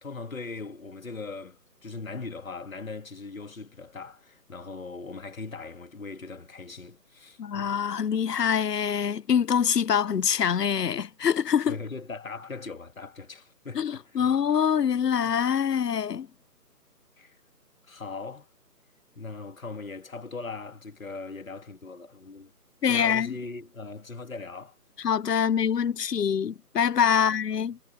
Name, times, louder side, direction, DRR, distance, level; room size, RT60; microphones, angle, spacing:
voice 1, 0.0-7.8 11.7-14.4 17.2-17.4 17.9-18.5 19.1-22.5 22.9-24.8 27.1-27.3, left 4 dB, 55° left, 2.9 m, -40 dB
voice 2, 7.4-11.8 13.7-16.3 22.8-23.4 25.0-27.8, left 8 dB, 80° left, 0.6 m, -25 dB
figure-of-eight pair, 150°, 48 cm